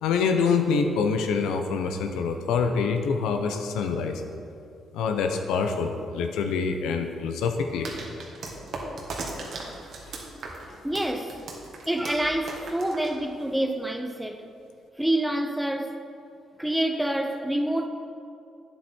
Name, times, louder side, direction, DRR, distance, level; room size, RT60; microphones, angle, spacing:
voice 1, 0.0-4.2 4.9-7.9, left 5 dB, 90° left, 0.7 m, -26 dB
sound 1, 7.8-13.6, right 3 dB, 60° right, 1.6 m, -38 dB
voice 2, 10.8-11.4 11.9-14.4 15.0-16.0 16.6-17.9, right 1 dB, 5° right, 0.7 m, -27 dB
9.2 x 7.9 x 4.4 m
cardioid pair, 90°, 0 cm